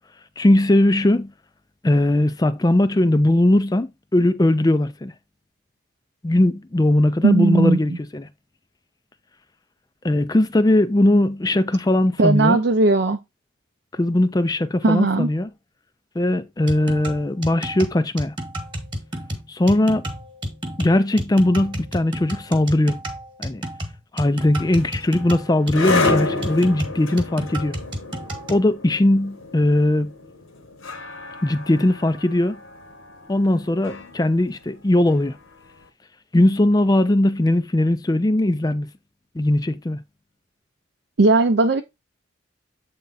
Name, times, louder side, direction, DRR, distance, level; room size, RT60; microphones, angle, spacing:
voice 1, 0.4-1.3 1.8-5.1 6.2-8.3 10.0-12.6 13.9-15.5 16.2-18.3 19.5-20.0 20.8-23.0 23.4-23.6 24.1-27.8 28.5-30.1 31.4-32.6 33.3-35.4 36.3-38.9 39.4-40.0, left 1 dB, 20° left, 0.4 m, -19 dB
voice 2, 7.2-8.0 12.2-13.2 14.8-15.3 41.2-41.8, right 3 dB, 55° right, 0.5 m, -17 dB
sound 1, 16.7-28.7, equal, 25° right, 1.3 m, -31 dB
sound 2, 24.5-35.7, left 3 dB, 85° left, 1.6 m, -30 dB
7.7 x 3.4 x 4.0 m
head